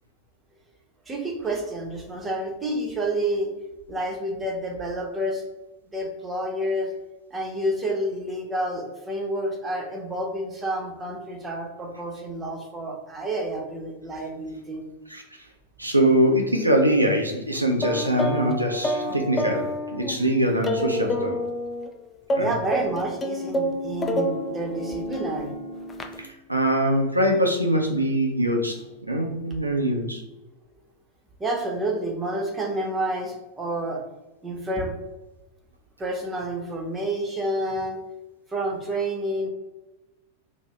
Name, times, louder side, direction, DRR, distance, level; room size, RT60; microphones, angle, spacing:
voice 1, 1.1-3.5 3.9-5.4 5.9-6.9 7.3-14.8 22.4-25.5 31.4-34.0 34.4-34.9 36.0-38.0 38.5-39.5, right 1 dB, 15° right, 0 dB, 0.8 m, -29 dB
voice 2, 15.8-21.4 22.3-22.5 26.2-30.2, right 1 dB, 85° right, 1 dB, 0.4 m, -23 dB
sound 1, 17.8-21.9 22.3-26.2, equal, 20° left, 0.4 m, -29 dB
2.7 x 2.6 x 3.2 m, 1.0 s
figure-of-eight pair, 90°, 0 cm